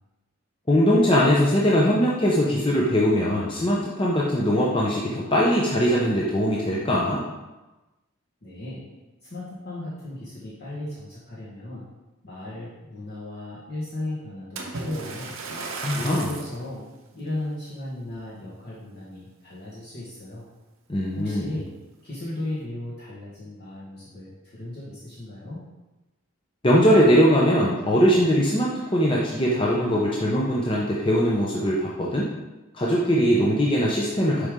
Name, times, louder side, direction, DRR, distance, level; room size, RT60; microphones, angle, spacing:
voice 1, 0.7-7.2 15.8-16.3 20.9-21.5 26.6-32.3 32.7-34.5, equal, 25° left, -4 dB, 0.7 m, -21 dB
voice 2, 8.4-8.8 9.2-11.8 12.2-15.4 15.9-16.9 17.1-20.5 21.2-21.7 22.0-25.6, left 1 dB, 45° left, -8 dB, 1.4 m, -35 dB
Splash splatter, 14.6-16.6 17.3-17.5 18.1-18.2, right 3 dB, 65° right, 0.8 m, -35 dB
6.8 x 4.9 x 3.7 m, 1.1 s
head